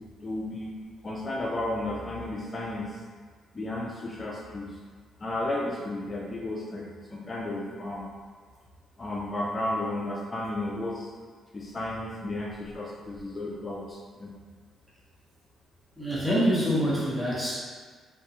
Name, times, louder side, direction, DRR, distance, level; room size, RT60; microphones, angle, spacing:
voice 1, 0.2-0.7 1.0-3.0 3.5-4.8 5.2-8.1 9.0-11.1 11.5-14.3, left 1 dB, 30° left, -3 dB, 0.3 m, -33 dB
voice 2, 16.0-17.6, equal, 15° right, -7 dB, 0.8 m, -25 dB
2.4 x 2.2 x 2.8 m, 1.5 s
cardioid pair, 90°, 0 cm